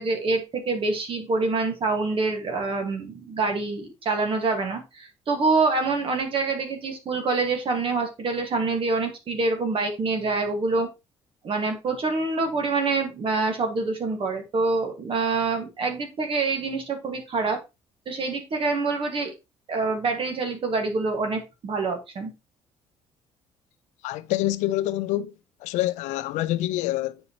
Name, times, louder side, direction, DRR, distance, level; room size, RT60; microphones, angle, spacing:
voice 1, 0.0-10.9 11.4-17.6 18.0-19.3 19.7-22.3, right 3 dB, 50° right, 1.5 m, -26 dB
voice 2, 24.0-25.3 25.6-27.2, left 15 dB, 80° left, 0.4 m, -26 dB
7.7 x 5.3 x 2.8 m
supercardioid pair, 80°, 12 cm